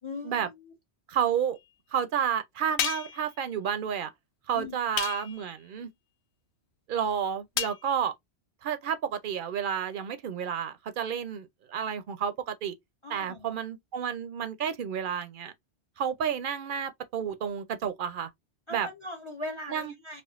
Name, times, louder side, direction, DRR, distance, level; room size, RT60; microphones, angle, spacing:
voice 1, 0.0-0.7 4.5-4.8 13.0-13.6 18.7-20.2, left 2 dB, 40° left, 0.5 m, -40 dB
voice 2, 1.1-1.6 1.9-4.1 4.5-5.9 6.9-8.1 8.6-12.7 13.1-15.5 16.0-18.3 18.7-18.9 19.7-19.9, right 8 dB, 60° right, 0.6 m, -31 dB
sound 1, 2.8-3.3 5.0-5.5 7.6-7.8, left 9 dB, 85° left, 0.9 m, -31 dB
4.3 x 2.3 x 2.4 m
omnidirectional pair, 1.1 m